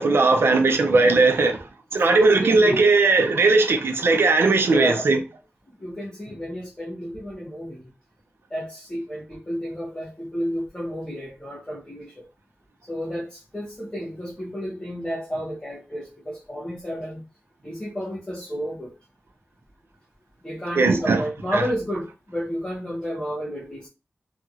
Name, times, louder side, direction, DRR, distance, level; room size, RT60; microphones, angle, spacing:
voice 1, 0.0-1.7 1.9-5.2 20.8-21.2 21.5-21.6, right 3 dB, 70° right, 0.5 m, -18 dB
voice 2, 2.3-2.9 4.6-5.1 5.8-7.9 8.5-12.3 12.9-17.2 17.6-18.9 20.4-23.9, equal, 20° left, 0.9 m, -31 dB
2.8 x 2.8 x 2.4 m
wide cardioid pair, 105°, 4 cm